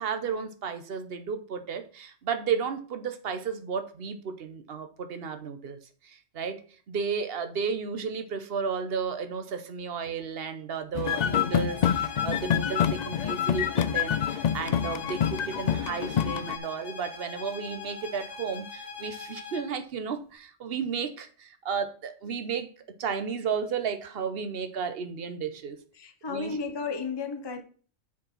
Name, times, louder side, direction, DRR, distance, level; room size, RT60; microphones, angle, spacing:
voice 1, 0.0-5.8 6.0-6.6 6.9-22.7 23.0-25.8 26.3-26.6, right 6 dB, 55° right, 1.1 m, -33 dB
sound 1, 10.9-16.6, left 9 dB, 80° left, 0.4 m, -27 dB
sound 2, 11.0-19.7, left 5 dB, 40° left, 1.5 m, -41 dB
voice 2, 25.9-27.6, left 4 dB, 25° left, 0.7 m, -33 dB
7.0 x 5.2 x 5.5 m
omnidirectional pair, 1.3 m